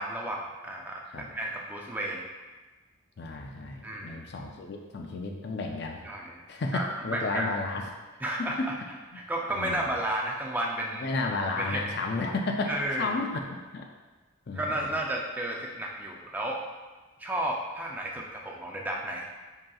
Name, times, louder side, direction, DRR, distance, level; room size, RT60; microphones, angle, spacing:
voice 1, 0.0-2.2 3.8-4.2 6.0-6.4 6.7-7.5 8.2-8.8 9.1-11.1 11.6-11.8 12.7-13.1 14.5-16.6 17.2-19.3, right 1 dB, 10° right, -1 dB, 0.4 m, -32 dB
voice 2, 3.2-6.0 6.5-7.9 8.4-8.7 9.5-9.9 11.0-12.7 13.0-13.8 14.5-14.6 18.2-18.3, left 3 dB, 50° left, 2 dB, 0.4 m, -32 dB
7.5 x 2.9 x 2.3 m, 1.2 s
head